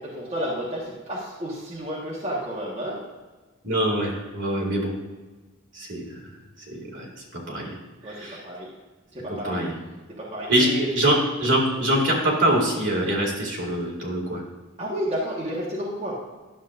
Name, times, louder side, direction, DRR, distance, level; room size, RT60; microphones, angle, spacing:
voice 1, 0.0-3.0 8.0-8.7 9.1-9.6 10.1-11.2 14.8-16.2, equal, 30° right, -6 dB, 1.4 m, -31 dB
voice 2, 3.6-4.9 5.7-6.0 6.7-7.0 7.5-7.7 8.1-8.4 9.4-9.7 10.5-11.1 11.4-14.4, right 1 dB, 60° right, -2 dB, 2.3 m, -24 dB
11.0 x 7.2 x 2.5 m, 1.3 s
head